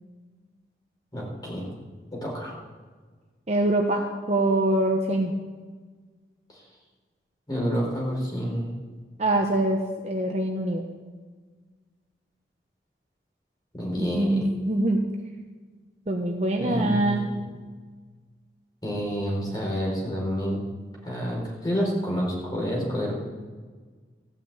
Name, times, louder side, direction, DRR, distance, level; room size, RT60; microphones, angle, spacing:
voice 1, 1.1-1.7 2.1-2.5 7.5-8.7 13.8-14.4 16.6-17.4 18.8-20.6 21.0-23.1, equal, 20° left, -3 dB, 4.4 m, -28 dB
voice 2, 3.5-5.3 9.2-10.8 14.0-15.0 16.1-17.2, right 1 dB, 40° right, 1 dB, 1.0 m, -24 dB
14.5 x 6.1 x 8.8 m, 1.5 s
head